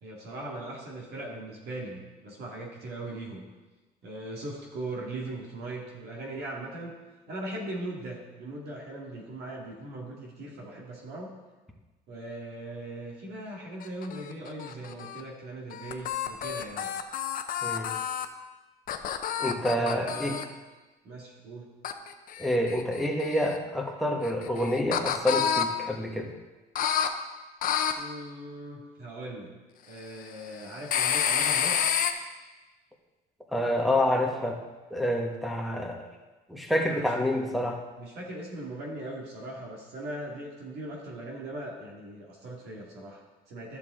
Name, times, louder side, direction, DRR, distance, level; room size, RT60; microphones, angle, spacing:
voice 1, 0.0-3.4 4.0-7.0 7.3-11.3 12.1-16.9 19.7-20.4 21.0-21.7 27.9-29.5 29.9-31.8 36.9-37.1 38.0-43.8, right 1 dB, 70° right, -2 dB, 2.1 m, -39 dB
sound 1, 13.8-15.2 15.7-18.3 18.9-20.4 21.8-23.6 24.2-25.6 26.8-27.1 27.6-27.9 30.9-32.1, left 8 dB, 55° left, 0.7 m, -29 dB
voice 2, 19.4-20.4 22.4-26.3 33.5-34.6 34.9-36.0 36.5-37.8, left 1 dB, ahead, 0 dB, 1.3 m, -28 dB
12.0 x 6.9 x 3.8 m, 1.2 s
cardioid pair, 110°, 17 cm